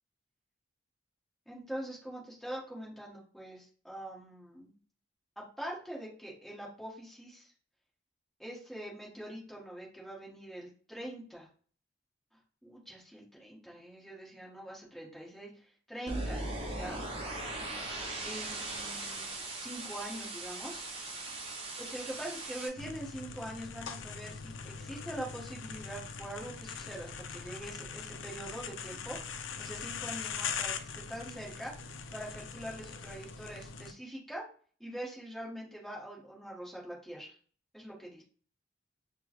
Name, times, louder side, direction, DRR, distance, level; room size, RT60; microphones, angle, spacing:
voice 1, 1.5-4.7 5.4-7.5 8.4-11.5 12.6-16.9 18.2-20.8 21.8-29.2 29.6-31.7 32.1-34.4 34.8-37.3 37.7-38.2, right 1 dB, ahead, -5 dB, 1.2 m, -43 dB
sound 1, 16.1-22.7, right 2 dB, 30° right, 0.6 m, -39 dB
sound 2, 22.8-33.9, left 6 dB, 85° left, 0.4 m, -41 dB
4.9 x 2.1 x 3.0 m, 0.42 s
head